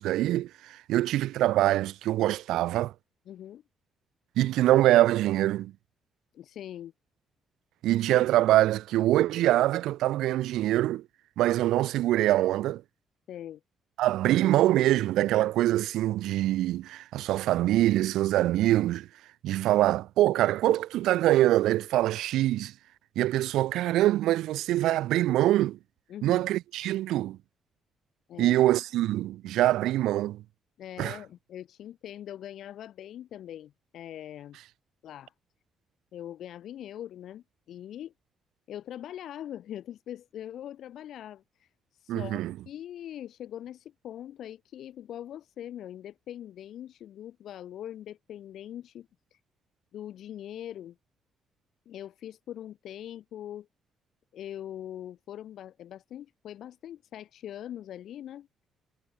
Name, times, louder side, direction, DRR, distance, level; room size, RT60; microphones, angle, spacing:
voice 1, 0.0-2.9 4.4-5.7 7.8-11.0 11.4-12.8 14.0-19.1 19.4-22.7 23.2-25.8 26.2-27.4 28.4-30.4 31.0-31.2 42.1-42.5, right 14 dB, 85° right, 0.4 m, -24 dB
voice 2, 3.3-3.6 6.3-6.9 13.3-13.6 26.1-26.4 28.3-28.7 30.8-34.6 35.0-35.3 36.1-38.1 38.7-49.4 49.9-51.0 51.9-53.7 54.3-58.5, left 11 dB, 70° left, 0.8 m, -42 dB
cardioid pair, 90°, 0 cm